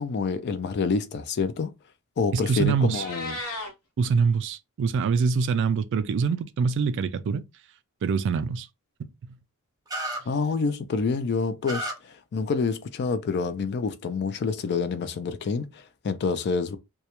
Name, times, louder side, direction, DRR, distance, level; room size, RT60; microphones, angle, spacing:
voice 1, 0.0-1.7 2.2-3.4 10.3-16.8, left 4 dB, 50° left, 0.4 m, -27 dB
voice 2, 2.3-3.0 4.0-7.4 8.0-8.7 9.0-9.4, right 5 dB, 55° right, 0.3 m, -25 dB
Meow, 2.7-3.7, left 2 dB, 90° left, 0.9 m, -35 dB
sound 1, 9.9-10.2 11.6-11.9, right 1 dB, 15° right, 0.6 m, -30 dB
2.2 x 2.1 x 2.8 m
head